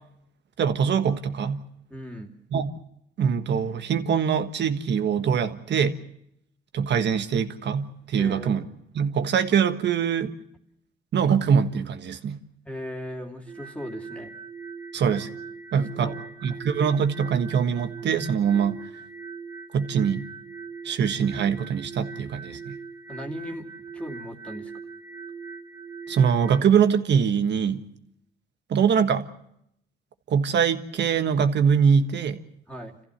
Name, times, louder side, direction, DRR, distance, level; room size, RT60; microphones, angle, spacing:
voice 1, 0.6-1.6 2.5-2.7 3.2-6.0 6.7-8.6 8.9-10.3 11.1-12.4 14.9-15.3 15.7-16.1 16.4-18.8 19.7-20.3 20.8-22.8 26.1-27.8 28.7-29.3 30.3-32.4, right 7 dB, 60° right, 9 dB, 1.5 m, -23 dB
voice 2, 1.9-2.3 8.2-8.6 12.7-14.3 15.9-16.2 16.5-16.6 23.1-23.7 23.9-24.7 32.7-33.0, equal, 5° left, 1 dB, 2.7 m, -37 dB
sound 1, 13.5-26.6, right 5 dB, 15° right, 1.4 m, -40 dB
28.0 x 15.0 x 7.4 m, 0.76 s
cardioid pair, 90°, 20 cm